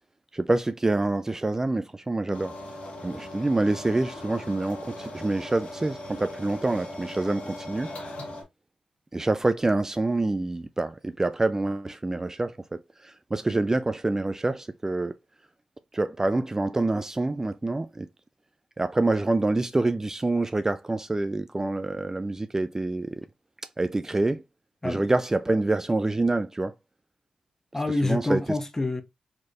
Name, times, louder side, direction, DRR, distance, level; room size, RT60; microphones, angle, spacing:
voice 1, 0.3-2.5 3.0-7.9 9.1-15.1 15.9-18.1 18.8-23.2 23.8-24.4 24.8-26.7 28.0-28.4, right 2 dB, 20° right, 0.3 m, -26 dB
sound 1, 2.3-8.4, left 1 dB, 70° left, 1.8 m, -39 dB
voice 2, 27.7-29.0, left 2 dB, 20° left, 0.7 m, -27 dB
4.3 x 3.1 x 2.4 m
cardioid pair, 65°, 2 cm